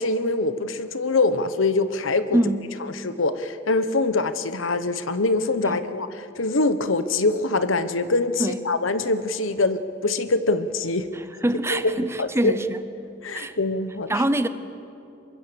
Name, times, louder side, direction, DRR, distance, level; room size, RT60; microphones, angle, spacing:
voice 1, 0.0-2.4 3.0-11.1 11.7-12.5 13.2-14.1, left 3 dB, 85° left, 1.1 m, -24 dB
voice 2, 2.3-2.7 5.6-5.8 8.4-8.6 11.1-12.9 13.3-13.5 14.1-14.5, right 1 dB, 15° right, 0.7 m, -24 dB
23.5 x 21.5 x 6.9 m
head